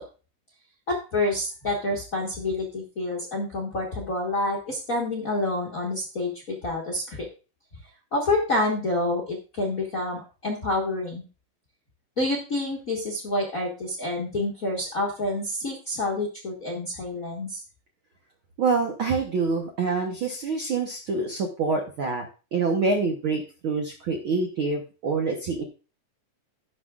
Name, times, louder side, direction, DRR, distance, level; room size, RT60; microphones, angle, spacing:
voice 1, 0.9-7.3 8.1-11.3 12.2-17.6, left 2 dB, 50° left, -2 dB, 1.0 m, -28 dB
voice 2, 18.6-25.6, right 4 dB, 75° right, 3 dB, 1.2 m, -26 dB
17.0 x 6.0 x 2.4 m, 0.34 s
omnidirectional pair, 3.8 m